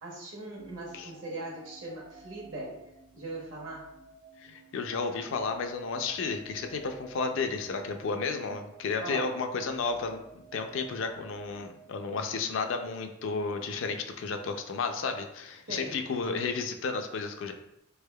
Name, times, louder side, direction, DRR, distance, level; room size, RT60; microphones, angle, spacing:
voice 1, 0.0-3.9 9.0-9.4 15.7-16.0, right 2 dB, 70° right, -3 dB, 1.1 m, -40 dB
sound 1, 0.6-12.7, right 4 dB, 90° right, 0.6 m, -54 dB
voice 2, 4.4-10.2 10.5-17.5, left 4 dB, 65° left, 6 dB, 0.4 m, -32 dB
3.5 x 3.4 x 2.2 m, 0.82 s
head